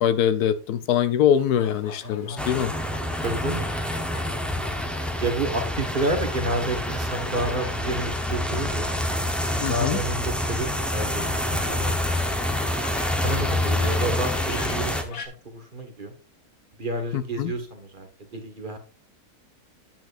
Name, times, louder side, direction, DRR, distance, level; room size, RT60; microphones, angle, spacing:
voice 1, 0.0-2.7 9.6-10.0 17.1-17.5, left 9 dB, 80° left, 1.2 m, -23 dB
sound 1, 1.3-15.3, left 4 dB, 60° left, 1.6 m, -43 dB
voice 2, 2.0-2.4 3.2-3.6 5.2-8.9 9.6-12.0 13.0-15.2 15.5-16.1 16.8-18.8, right 2 dB, 35° right, 1.5 m, -30 dB
sound 2, 2.4-15.0, left 1 dB, ahead, 0.5 m, -27 dB
8.9 x 8.8 x 2.5 m
omnidirectional pair, 1.7 m